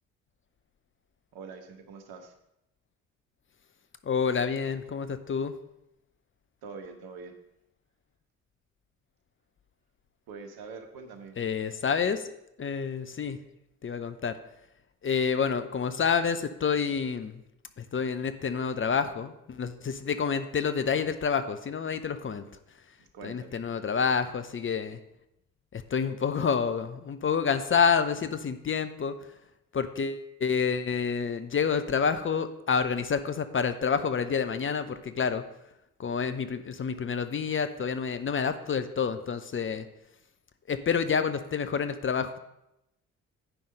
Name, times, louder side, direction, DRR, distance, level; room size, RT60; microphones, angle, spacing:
voice 1, 1.3-2.3 6.6-7.4 10.3-11.3 23.0-23.6, right 4 dB, 65° right, 6 dB, 1.3 m, -44 dB
voice 2, 4.0-5.5 11.4-12.3 12.6-13.4 13.8-14.4 15.0-17.4 17.8-22.4 23.2-25.0 25.7-29.1 29.7-35.4 36.0-39.8 40.7-42.4, left 6 dB, 30° left, 11 dB, 0.7 m, -28 dB
9.1 x 5.5 x 5.1 m, 0.86 s
hypercardioid pair, 50°, 40 cm